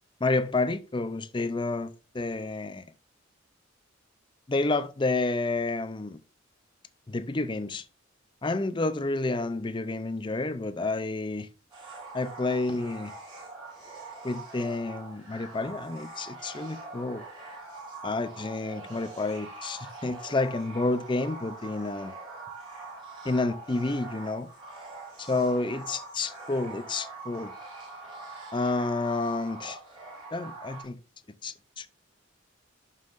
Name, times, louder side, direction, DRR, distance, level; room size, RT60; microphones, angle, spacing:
voice 1, 0.2-2.9 4.5-6.2 7.1-7.8 8.4-11.5 12.1-13.1 14.2-17.2 18.0-22.1 23.2-24.5 25.2-27.5 28.5-29.8 30.3-31.0 31.4-31.9, left 3 dB, 25° left, 0.5 m, -30 dB
sound 1, 11.7-30.8, right 3 dB, 25° right, 4.9 m, -43 dB
11.5 x 5.7 x 2.5 m
head